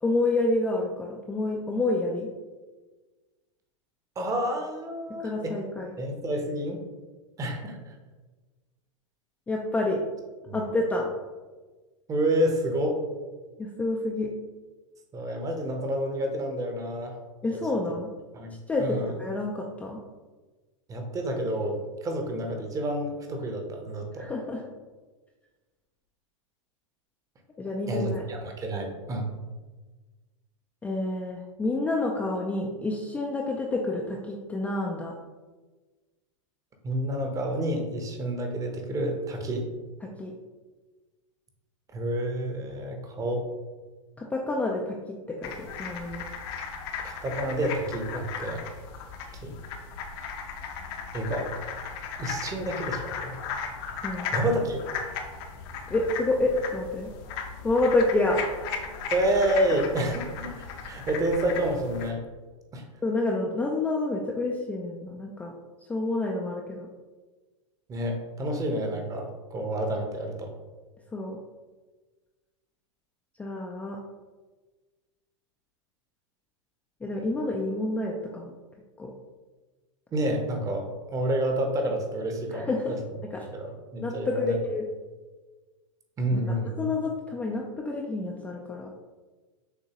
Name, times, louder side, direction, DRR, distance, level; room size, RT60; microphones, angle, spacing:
voice 1, 0.0-2.3 5.2-5.9 9.5-10.0 10.5-11.1 13.6-14.3 17.4-18.1 18.7-20.0 24.2-24.6 27.6-28.2 30.8-35.1 40.0-40.3 44.2-46.2 54.0-54.3 55.9-57.1 57.6-58.4 63.0-65.5 65.9-66.9 71.1-71.4 73.4-74.0 77.0-78.5 79.0-79.1 82.5-83.0 83.3-83.5 84.0-84.9 86.3-88.9, left 2 dB, 10° left, -2 dB, 0.4 m, -28 dB
voice 2, 4.2-5.6 6.0-6.8 7.4-7.9 10.5-10.7 12.1-13.0 15.1-17.1 18.3-18.5 18.8-19.1 20.9-24.3 27.9-29.3 36.8-39.7 41.9-43.4 47.0-48.6 49.4-49.5 51.1-51.5 52.2-53.3 54.3-54.8 59.1-62.2 62.7-62.8 67.9-70.5 80.1-80.9 81.1-82.7 83.5-84.5 86.2-86.8, right 1 dB, 20° right, 3 dB, 0.8 m, -29 dB
wood frogs, 45.4-62.1, left 6 dB, 50° left, 0.7 m, -36 dB
6.6 x 2.6 x 2.9 m, 1.3 s
hypercardioid pair, 120°, 17 cm